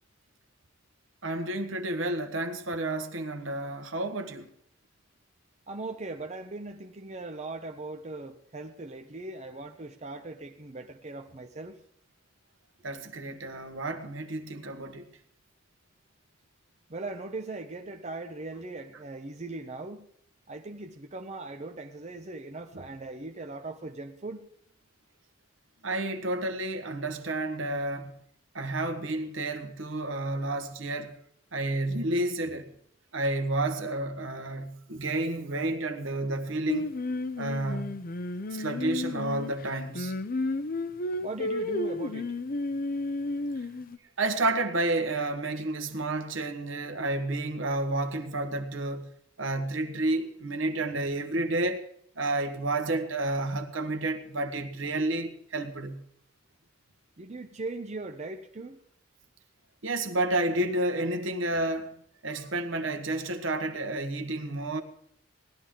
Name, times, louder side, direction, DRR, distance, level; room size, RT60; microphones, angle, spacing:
voice 1, 1.2-4.5 12.8-15.0 22.7-22.8 25.8-28.2 28.5-31.1 31.5-32.7 33.1-36.9 37.4-38.0 38.5-40.1 44.2-49.1 49.4-51.8 52.2-56.0 59.8-61.9 62.2-64.8, right 2 dB, 70° right, 1.4 m, -30 dB
voice 2, 5.7-11.8 16.9-20.1 20.5-24.5 41.2-42.3 57.2-58.8, right 2 dB, 35° right, 0.8 m, -39 dB
Singing, 36.7-44.0, left 2 dB, 45° left, 0.6 m, -32 dB
18.5 x 12.0 x 3.7 m
head